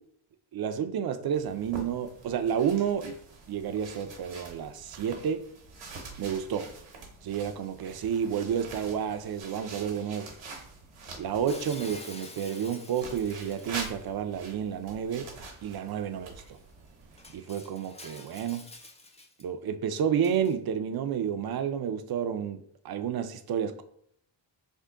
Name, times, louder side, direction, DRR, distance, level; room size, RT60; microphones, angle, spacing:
voice 1, 0.5-3.2 3.5-5.4 6.2-6.7 7.2-10.3 11.2-15.3 15.6-16.6 17.3-18.6 19.4-23.8, right 8 dB, 50° right, 8 dB, 0.5 m, -30 dB
sound 1, 1.3-12.0 12.9-17.4, right 3 dB, 85° right, 1.1 m, -45 dB
Shatter, 11.5-14.1 15.9-16.0 16.5-16.6 17.2-19.4 20.2-20.5, left 2 dB, 15° left, 0.4 m, -48 dB
3.5 x 2.1 x 3.6 m, 0.67 s
wide cardioid pair, 105°, 48 cm